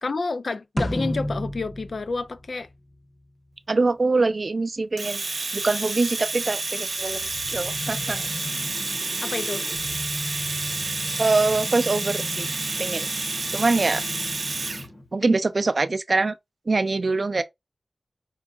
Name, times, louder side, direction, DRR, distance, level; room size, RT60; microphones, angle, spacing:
voice 1, 0.0-2.7 9.2-9.6, left 3 dB, 70° left, 0.4 m, -29 dB
sound 1, 0.8-3.2, left 1 dB, 15° left, 0.5 m, -30 dB
voice 2, 3.7-5.3 5.5-8.3 11.2-12.5 12.8-13.1 13.5-14.0 15.1-16.3 16.7-17.4, right 3 dB, 55° right, 0.3 m, -24 dB
Domestic sounds home sounds, 5.0-14.9, right 3 dB, 75° right, 0.7 m, -29 dB
sound 2, 6.4-15.1, left 1 dB, 55° left, 1.0 m, -38 dB
4.6 x 2.3 x 2.3 m
wide cardioid pair, 85°, 0 cm